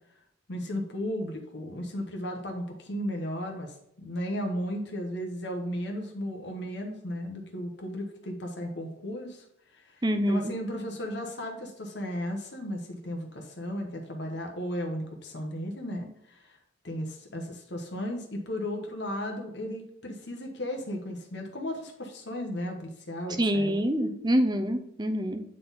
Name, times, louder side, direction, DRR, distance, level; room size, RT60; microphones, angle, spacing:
voice 1, 0.5-16.6 16.8-23.7, equal, 60° left, 2 dB, 1.0 m, -35 dB
voice 2, 10.0-10.5 23.4-25.4, equal, 20° right, 7 dB, 0.6 m, -26 dB
8.7 x 4.1 x 4.0 m, 0.78 s
head